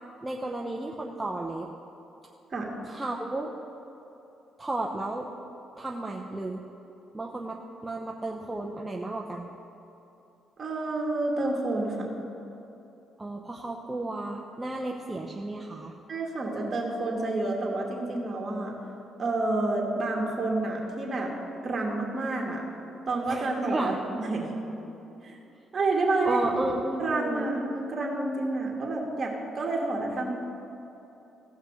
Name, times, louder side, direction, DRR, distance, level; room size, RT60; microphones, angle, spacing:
voice 1, 0.2-1.7 2.8-3.5 4.6-5.3 5.8-6.6 7.1-9.5 13.2-16.0 23.3-24.0 26.2-27.5, right 2 dB, 15° right, 0 dB, 0.8 m, -33 dB
voice 2, 10.6-12.1 16.1-18.8 19.2-21.3 21.6-22.6 23.1-24.5 25.2-25.4 25.7-26.5 27.0-30.3, right 2 dB, 40° right, -1 dB, 2.4 m, -29 dB
16.0 x 5.6 x 6.3 m, 2.9 s
cardioid pair, 90°, 0 cm